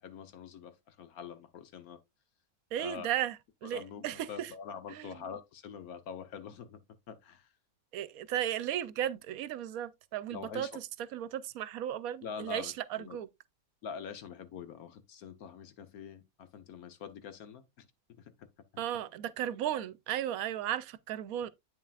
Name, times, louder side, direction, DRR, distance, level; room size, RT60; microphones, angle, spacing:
voice 1, 0.0-2.0 2.8-3.1 3.6-6.8 7.1-7.5 10.3-10.8 12.2-13.2 13.8-18.8, left 7 dB, 80° left, 1.4 m, -45 dB
voice 2, 2.7-4.5 4.9-5.2 7.9-13.3 18.8-21.5, right 11 dB, 75° right, 1.0 m, -35 dB
8.4 x 7.3 x 2.3 m
omnidirectional pair, 1.5 m